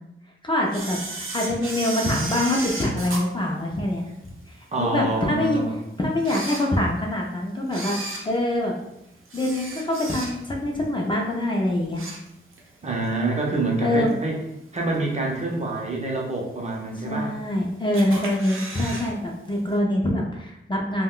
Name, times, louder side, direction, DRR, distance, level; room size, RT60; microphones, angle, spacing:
voice 1, 0.4-4.3 4.8-5.6 6.0-8.0 8.2-8.7 9.3-12.1 13.8-14.1 17.0-21.0, left 1 dB, 25° left, -2 dB, 0.4 m, -24 dB
Camera, 0.7-4.3 4.8-4.9 5.6-5.7 6.1-7.2 7.6-10.6 11.0-11.3 11.6-12.7 13.0-13.1 14.1-14.2 14.8-15.2 15.6-15.7 15.9-16.0 16.1-16.2 17.0-17.5 17.9-19.1 19.3-19.4 19.7-19.8, right 2 dB, 85° right, 0.6 m, -34 dB
voice 2, 4.7-5.8 12.8-14.4 14.7-17.3, right 2 dB, 35° right, -1 dB, 0.6 m, -26 dB
2.3 x 2.2 x 3.6 m, 0.85 s
wide cardioid pair, 115°, 21 cm